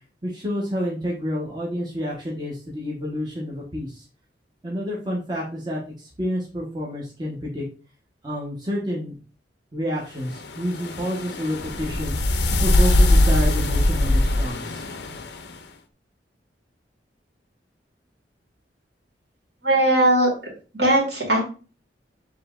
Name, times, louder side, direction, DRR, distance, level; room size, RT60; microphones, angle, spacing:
voice 1, 0.2-4.0 4.6-7.6 8.2-9.1 9.7-12.1 12.6-14.8, equal, 25° right, -4 dB, 1.0 m, -29 dB
sound 1, 10.2-15.5, left 1 dB, 70° left, 0.5 m, -21 dB
voice 2, 19.6-20.3 20.7-21.4, right 1 dB, 70° right, -3 dB, 2.3 m, -18 dB
6.9 x 2.9 x 2.4 m, 0.37 s
head